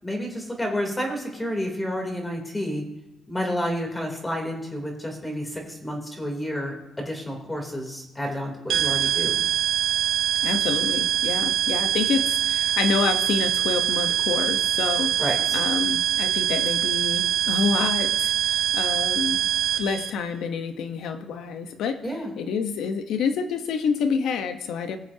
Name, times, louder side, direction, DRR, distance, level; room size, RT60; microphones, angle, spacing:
voice 1, 0.0-2.8 3.3-9.4 15.2-15.6 22.0-22.3, equal, 15° left, 1 dB, 3.4 m, -30 dB
sound 1, 8.7-20.1, right 11 dB, 80° right, 1.1 m, -24 dB
voice 2, 10.4-15.2 15.5-19.4 19.7-25.0, left 6 dB, 80° left, 7 dB, 1.1 m, -28 dB
20.0 x 7.4 x 2.9 m, 0.99 s
cardioid pair, 90°, 0 cm